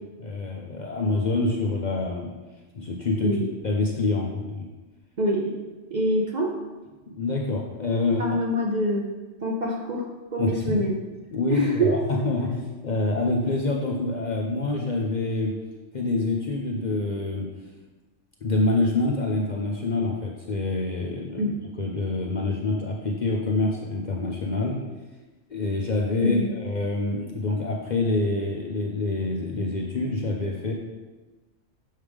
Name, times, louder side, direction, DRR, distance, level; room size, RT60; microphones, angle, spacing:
voice 1, 0.2-2.3 2.7-4.7 7.1-8.2 10.4-10.8 11.3-15.5 15.9-17.5 18.4-24.8 25.5-30.7, left 2 dB, 50° left, -1 dB, 0.6 m, -26 dB
voice 2, 5.2-5.6 5.9-6.6 8.2-9.1 9.4-11.0 11.5-12.0 21.4-21.6 26.2-26.5, equal, 45° right, -1 dB, 0.6 m, -25 dB
6.5 x 4.9 x 3.5 m, 1.2 s
omnidirectional pair, 1.3 m